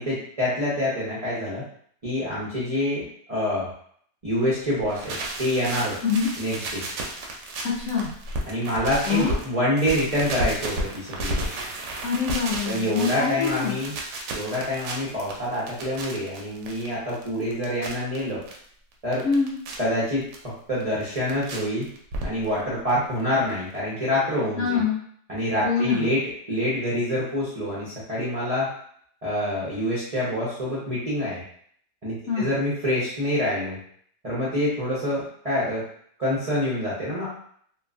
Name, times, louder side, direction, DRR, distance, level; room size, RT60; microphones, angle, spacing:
voice 1, 0.0-1.6 2.0-3.0 3.3-3.7 4.2-6.0 6.4-6.8 8.5-11.6 12.7-13.9 14.3-18.4 19.0-19.2 19.8-21.9 22.2-24.8 25.3-26.2 26.5-28.7 29.2-31.4 32.0-33.8 34.2-35.8 36.2-37.3, left 1 dB, 55° right, -8 dB, 0.4 m, -26 dB
sound 1, 4.8-9.5 9.8-18.6 18.9-19.8 20.3-20.4 20.8-21.6 21.8-22.6 22.9-23.0 23.2-23.3 23.5-23.6, right 1 dB, 75° right, 1.1 m, -33 dB
voice 2, 7.6-8.1 9.0-9.4 12.0-13.8 19.2-19.5 24.6-25.0 25.6-26.1 32.3-32.5, left 6 dB, 80° left, -6 dB, 0.6 m, -25 dB
3.0 x 2.3 x 2.4 m, 0.62 s
omnidirectional pair, 1.8 m